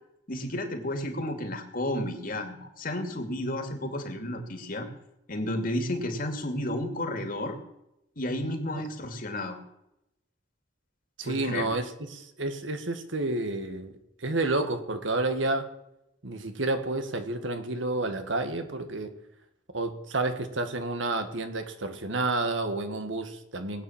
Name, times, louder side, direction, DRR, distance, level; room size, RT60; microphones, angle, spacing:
voice 1, 0.3-4.9 5.3-7.6 8.2-9.6 11.2-11.6, left 1 dB, 45° left, 5 dB, 2.5 m, -32 dB
voice 2, 11.2-13.9 14.2-15.7 16.2-19.1 19.7-23.8, right 2 dB, 80° right, 8 dB, 1.8 m, -30 dB
20.0 x 8.9 x 7.3 m, 0.85 s
head